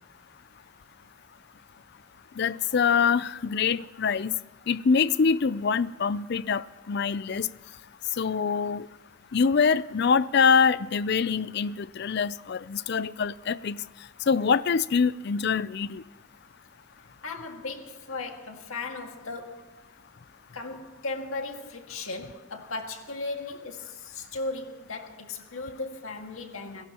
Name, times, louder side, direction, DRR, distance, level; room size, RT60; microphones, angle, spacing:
voice 1, 2.4-4.4 4.7-7.5 8.2-8.9 9.3-13.8 14.3-16.0, left 5 dB, 50° left, 0.4 m, -24 dB
voice 2, 17.2-19.7 20.5-26.8, left 3 dB, 80° left, 1.9 m, -36 dB
28.0 x 17.5 x 3.0 m
head